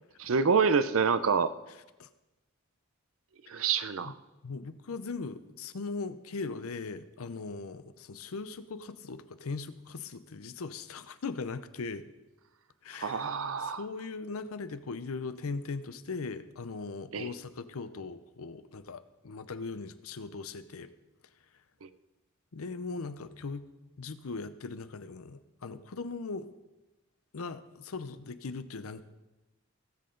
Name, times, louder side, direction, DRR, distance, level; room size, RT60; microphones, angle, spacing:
voice 1, 0.2-1.5 3.5-4.1 13.0-13.8 17.1-17.3 21.8-21.9, right 5 dB, 70° right, 13 dB, 0.6 m, -27 dB
voice 2, 4.4-12.1 12.8-13.3 13.6-20.9 22.5-23.7 24.0-26.5 27.3-29.0, left 4 dB, 85° left, 12 dB, 0.7 m, -39 dB
17.5 x 7.7 x 3.8 m, 1.1 s
head